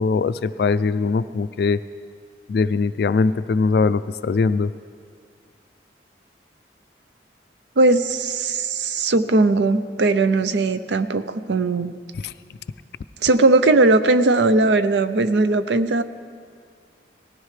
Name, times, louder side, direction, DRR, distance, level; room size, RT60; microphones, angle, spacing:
voice 1, 0.0-1.8 2.5-4.7 12.2-12.3, left 4 dB, 60° left, 13 dB, 0.3 m, -21 dB
voice 2, 7.8-11.9 13.2-16.0, right 2 dB, 75° right, 12 dB, 0.6 m, -18 dB
19.0 x 16.0 x 3.3 m, 2.2 s
head